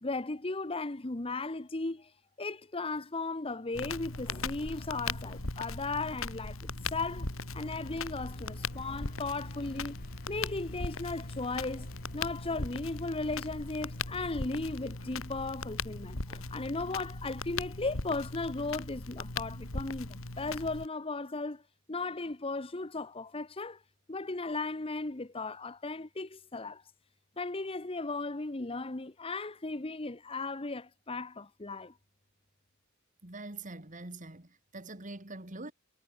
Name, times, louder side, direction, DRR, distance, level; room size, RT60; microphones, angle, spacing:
voice 1, 0.0-2.1 2.4-7.3 7.5-10.0 10.3-21.6 21.9-23.8 24.1-26.8 27.4-31.9, left 3 dB, 25° left, 1.0 m, -36 dB
Crackle, 3.7-20.9, left 3 dB, 85° left, 2.9 m, -39 dB
sound 1, 6.6-16.5, left 1 dB, 45° left, 5.9 m, -50 dB
voice 2, 33.2-35.7, right 2 dB, 40° right, 2.6 m, -44 dB
head